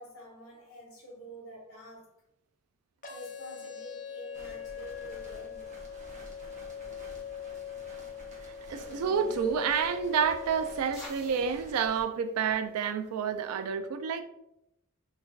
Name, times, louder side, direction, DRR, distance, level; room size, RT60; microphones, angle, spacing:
voice 1, 0.0-2.1 3.1-5.7, equal, 65° left, 1.0 m, -47 dB
sound 1, 3.0-11.0, left 8 dB, 40° left, 0.4 m, -42 dB
sound 2, 4.3-12.0, equal, 35° right, 0.8 m, -51 dB
sound 3, 8.6-13.7, left 1 dB, 5° right, 1.3 m, -55 dB
voice 2, 8.7-14.2, right 7 dB, 85° right, 0.3 m, -29 dB
3.2 x 3.2 x 2.3 m
head